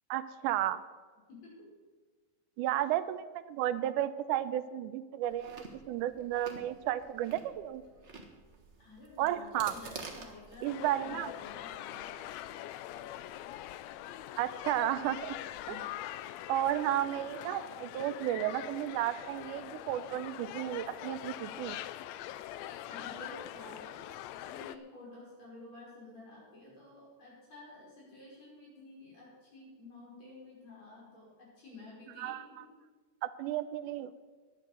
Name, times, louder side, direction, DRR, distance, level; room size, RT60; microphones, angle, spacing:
voice 1, 0.1-0.8 2.6-7.8 9.2-9.7 10.6-11.3 14.4-15.4 15.7-15.8 16.5-21.8 32.2-32.4 33.2-34.1, right 12 dB, 85° right, 13 dB, 2.1 m, -33 dB
voice 2, 1.3-1.7 8.8-12.1 15.7-15.8 22.9-32.4, left 2 dB, 60° left, -5 dB, 6.6 m, -51 dB
Chewing mastication, 5.2-10.7, right 4 dB, 45° right, 0.8 m, -49 dB
sound 1, 10.7-24.8, left 13 dB, 80° left, 1.6 m, -43 dB
11.5 x 10.0 x 6.8 m, 1.4 s
omnidirectional pair, 3.5 m